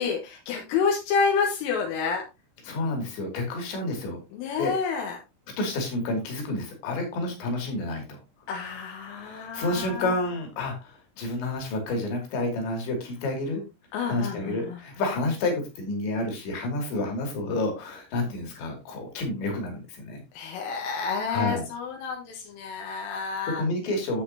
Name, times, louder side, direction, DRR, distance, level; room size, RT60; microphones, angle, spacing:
voice 1, 0.0-2.2 4.3-5.2 8.5-10.1 13.9-14.8 20.4-23.6, left 5 dB, 85° left, 1 dB, 3.9 m, -29 dB
voice 2, 2.6-4.2 4.5-4.8 5.6-8.2 9.1-13.6 14.1-20.2 21.3-21.6 23.5-24.2, left 2 dB, 65° left, 3 dB, 4.6 m, -29 dB
10.5 x 7.7 x 2.8 m, 0.25 s
omnidirectional pair, 5.9 m